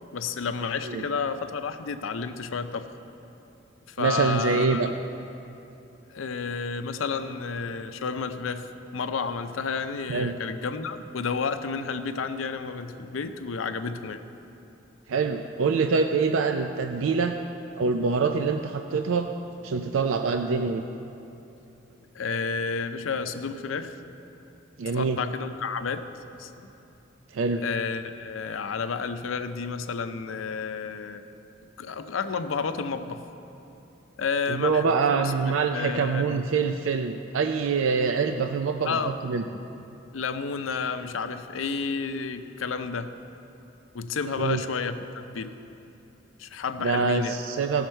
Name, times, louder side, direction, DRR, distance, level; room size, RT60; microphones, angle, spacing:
voice 1, 0.1-2.9 3.9-4.9 6.1-14.2 22.1-24.0 24.9-26.1 26.4-26.7 27.6-31.2 31.8-33.2 34.2-34.8 35.1-36.5 38.8-39.2 40.1-43.1 43.9-45.6 46.4-47.4, left 5 dB, 90° left, 9 dB, 0.6 m, -31 dB
voice 2, 4.0-4.9 10.1-10.3 15.1-17.4 17.8-19.3 19.6-20.8 24.8-25.2 27.3-27.6 34.5-39.4 44.4-44.6 46.8-47.9, right 5 dB, 85° right, 6 dB, 0.4 m, -25 dB
17.0 x 6.5 x 4.4 m, 3.0 s
head